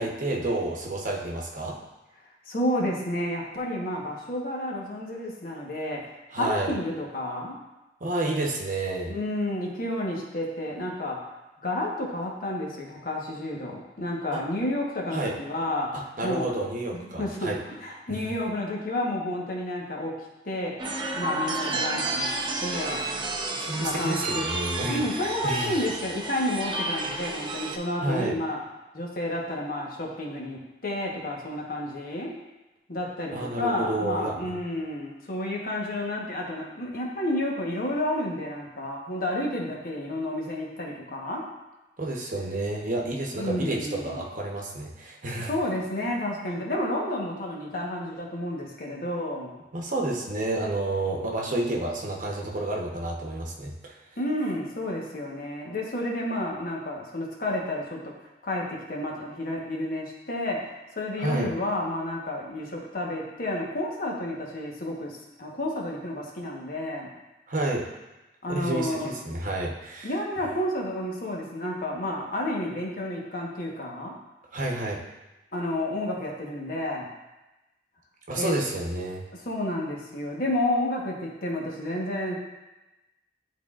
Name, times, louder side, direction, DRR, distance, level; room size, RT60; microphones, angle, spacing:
voice 1, 0.0-1.8 6.3-6.7 8.0-9.1 14.3-14.4 15.1-15.3 15.9-17.6 18.1-18.3 23.6-25.0 25.4-25.8 28.0-28.3 33.3-34.5 42.0-45.5 49.7-53.9 61.2-61.5 67.5-67.8 68.5-70.1 74.5-75.0 78.3-79.2, right 2 dB, 50° right, -1 dB, 0.9 m, -30 dB
voice 2, 2.5-6.0 6.3-7.6 9.1-11.2 11.6-15.9 16.2-16.5 16.9-20.1 20.4-20.7 21.2-22.3 22.6-23.1 23.8-24.5 24.8-28.6 28.9-32.3 32.9-41.5 43.4-44.2 45.4-49.5 54.2-58.1 58.4-67.1 68.4-69.1 70.0-74.2 75.5-77.1 78.3-78.5 79.4-82.4, left 1 dB, 55° left, -2 dB, 1.1 m, -30 dB
sound 1, 20.8-27.8, right 2 dB, 25° right, 0.6 m, -31 dB
10.5 x 3.8 x 2.4 m, 1.0 s
head